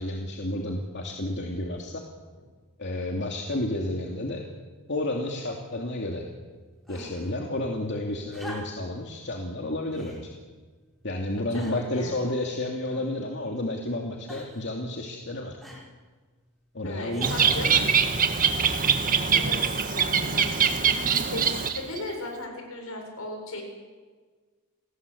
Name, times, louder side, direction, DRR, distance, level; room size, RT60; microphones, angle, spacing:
voice 1, 0.0-2.0 2.8-4.4 4.9-6.2 6.9-10.3 11.0-15.6 16.7-17.7, left 1 dB, 55° left, 1 dB, 2.8 m, -31 dB
sound 1, 6.9-7.3 8.3-9.0 9.9-10.2 11.0-11.1 11.5-12.0 12.8-13.4 14.3-14.7 15.6-15.9 17.1-17.4 18.7-19.2 20.2-20.3, equal, ahead, 5.6 m, -44 dB
voice 2, 11.4-12.3 16.8-17.8 19.3-20.7 21.3-23.6, left 1 dB, 70° left, 3 dB, 7.6 m, -37 dB
Bird, 17.2-22.0, right 6 dB, 40° right, 1.9 m, -23 dB
30.0 x 20.0 x 8.3 m, 1.4 s
head